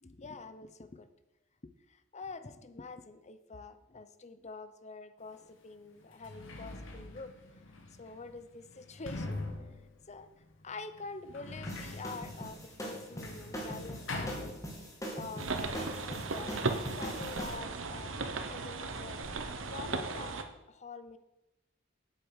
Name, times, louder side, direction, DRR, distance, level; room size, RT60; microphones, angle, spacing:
voice 1, 0.0-1.1 1.6-7.3 8.0-9.4 10.1-10.3 10.6-14.6 15.1-16.5 16.8-18.1 18.5-19.2 19.7-20.4 20.7-21.2, left 3 dB, 35° left, 11 dB, 0.8 m, -46 dB
Sliding door, 5.3-5.4 6.0-15.2 15.4-16.3, left 2 dB, 85° left, 1.9 m, -44 dB
sound 1, 11.6-17.5, equal, 15° left, 2.5 m, -42 dB
sound 2, 15.4-20.4, right 3 dB, 90° right, 1.1 m, -36 dB
8.6 x 8.1 x 6.3 m, 0.94 s
head